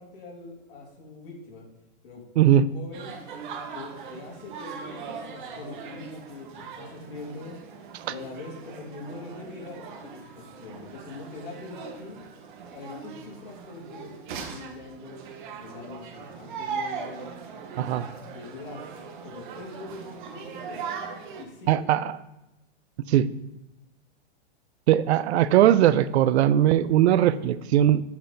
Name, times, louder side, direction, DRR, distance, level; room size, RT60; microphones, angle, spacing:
voice 1, 0.0-1.7 2.0-2.2 2.7-3.1 3.7-7.5 8.1-12.2 12.7-15.2 15.6-17.3 17.8-18.1 18.3-18.8 19.2-20.8 21.3-21.9, left 3 dB, 55° left, -2 dB, 2.2 m, -43 dB
voice 2, 2.4-2.7 17.8-18.0 21.7-22.2 23.1-23.3 24.9-28.0, right 11 dB, 75° right, 16 dB, 0.5 m, -20 dB
sound 1, 2.9-21.4, right 6 dB, 50° right, 0.8 m, -40 dB
7.0 x 4.1 x 3.8 m, 0.95 s
supercardioid pair, 165°, 33 cm